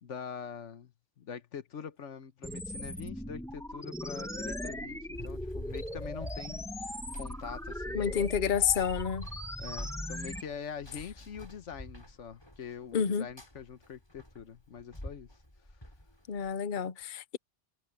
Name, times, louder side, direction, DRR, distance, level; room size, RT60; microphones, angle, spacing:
voice 1, 0.0-8.3 9.6-15.3, left 7 dB, 80° left, 1.5 m, -44 dB
sound 1, 2.4-10.4, equal, 5° left, 1.3 m, -39 dB
Run, 5.1-16.5, left 1 dB, 20° left, 4.5 m, -48 dB
voice 2, 7.9-9.3 12.9-13.3 16.3-17.4, left 7 dB, 50° left, 0.8 m, -29 dB
omnidirectional pair, 1.2 m